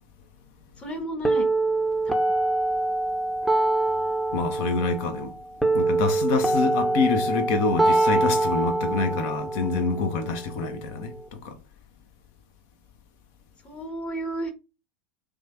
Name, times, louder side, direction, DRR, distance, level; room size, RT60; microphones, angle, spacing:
voice 1, 0.8-1.5 13.6-14.5, right 1 dB, 20° left, 1.2 m, -32 dB
sound 1, 1.2-11.2, right 2 dB, 5° left, 0.7 m, -25 dB
voice 2, 4.3-5.3 5.7-11.6, left 4 dB, 50° left, 0.8 m, -26 dB
3.1 x 2.3 x 4.0 m
figure-of-eight pair, 85°, 5 cm